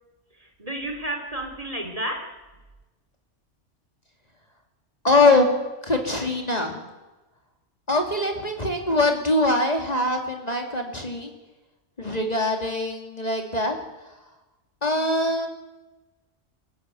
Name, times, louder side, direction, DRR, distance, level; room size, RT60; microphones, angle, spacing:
voice 1, 0.3-2.4, right 1 dB, 30° right, 5 dB, 2.9 m, -32 dB
voice 2, 5.0-5.5 5.8-6.8 7.9-11.3 12.0-13.8 14.8-15.5, left 2 dB, 35° left, 3 dB, 2.7 m, -22 dB
24.5 x 14.0 x 9.3 m, 1.1 s
omnidirectional pair, 1.2 m